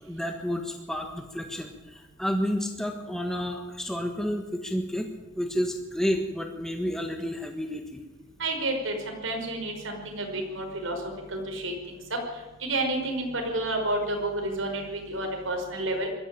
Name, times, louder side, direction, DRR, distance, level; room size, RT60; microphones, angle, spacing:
voice 1, 0.1-5.1 5.4-8.0, equal, ahead, 3 dB, 1.4 m, -30 dB
voice 2, 8.4-11.0 11.3-16.1, right 1 dB, 75° right, 3 dB, 5.4 m, -30 dB
21.5 x 14.0 x 9.0 m, 1.2 s
head